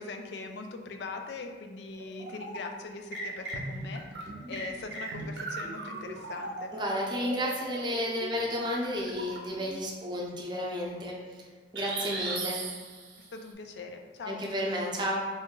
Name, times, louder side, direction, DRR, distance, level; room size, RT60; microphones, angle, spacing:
voice 1, 0.0-4.0 4.5-6.7 13.3-14.4, left 3 dB, 70° left, 5 dB, 0.4 m, -41 dB
sound 1, 1.9-2.7 3.1-9.7 11.8-13.3, right 2 dB, 65° right, 0.6 m, -38 dB
voice 2, 6.7-11.1 11.7-12.6 14.3-15.2, equal, 25° right, -2 dB, 0.6 m, -32 dB
3.1 x 2.6 x 3.7 m, 1.5 s
head